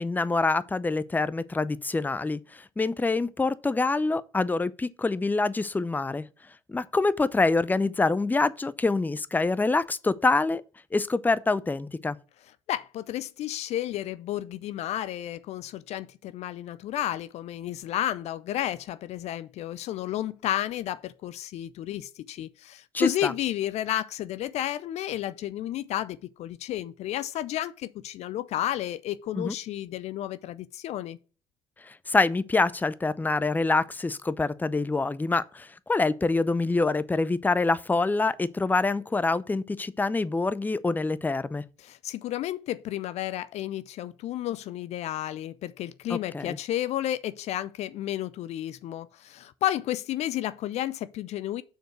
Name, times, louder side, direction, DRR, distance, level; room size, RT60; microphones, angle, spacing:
voice 1, 0.0-2.4 2.8-6.2 6.7-10.6 10.9-12.2 22.9-23.3 29.3-29.5 31.9-41.6 46.1-46.6, left 3 dB, 15° left, 0.5 m, -26 dB
voice 2, 12.7-31.2 41.8-51.6, left 13 dB, 60° left, 0.4 m, -32 dB
6.4 x 4.6 x 6.0 m
hypercardioid pair, 65°, 13 cm